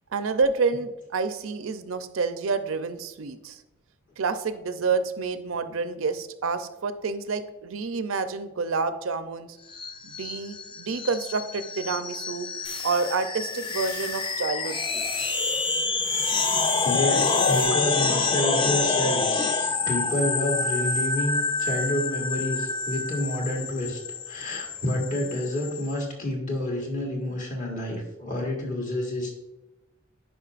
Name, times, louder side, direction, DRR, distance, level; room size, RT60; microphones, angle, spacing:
voice 1, 0.1-3.6 4.2-9.6 10.0-12.5 12.8-15.4, right 4 dB, 80° right, 10 dB, 0.5 m, -28 dB
sound 1, 9.7-25.9, left 4 dB, 25° left, 0.3 m, -27 dB
sound 2, 12.6-17.6, left 3 dB, 55° left, 2.4 m, -42 dB
voice 2, 16.8-19.5 19.8-24.0 24.2-29.4, left 1 dB, 40° left, -1 dB, 1.6 m, -29 dB
9.8 x 5.2 x 2.5 m, 1.0 s
head